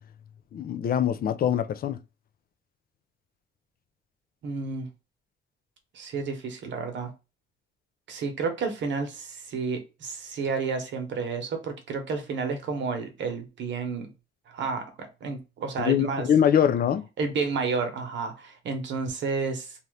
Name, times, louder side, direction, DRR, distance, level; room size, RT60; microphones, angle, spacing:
voice 1, 0.5-2.0 15.8-17.0, left 9 dB, 50° left, 0.4 m, -23 dB
voice 2, 4.4-4.9 5.9-7.1 8.1-14.1 14.5-14.8 15.2-16.3 17.2-19.7, right 4 dB, 65° right, 1.0 m, -31 dB
2.8 x 2.4 x 3.2 m
cardioid pair, 90°, 20 cm